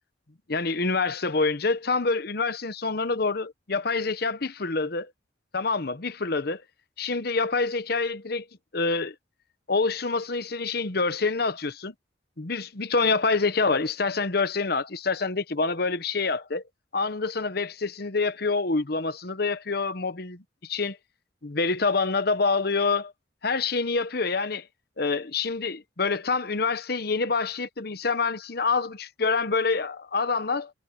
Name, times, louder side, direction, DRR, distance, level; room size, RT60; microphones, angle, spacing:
voice 1, 0.5-5.1 5.5-6.6 7.0-8.4 8.7-9.1 9.7-11.9 12.4-16.6 16.9-21.0 21.4-23.1 23.4-24.7 25.0-30.7, left 4 dB, 55° left, 1.0 m, -26 dB
head